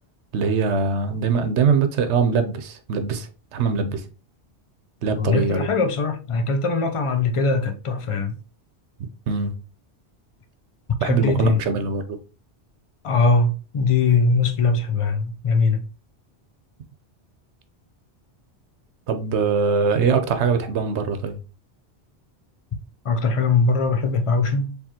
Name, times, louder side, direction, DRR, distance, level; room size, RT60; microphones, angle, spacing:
voice 1, 0.3-4.0 5.0-5.7 9.3-9.5 11.0-12.2 19.1-21.4, right 5 dB, 85° right, 1.0 m, -22 dB
voice 2, 5.1-8.4 10.9-11.6 13.0-15.8 23.0-24.8, left 4 dB, 35° left, 0.6 m, -21 dB
4.7 x 3.4 x 2.8 m
omnidirectional pair, 1.1 m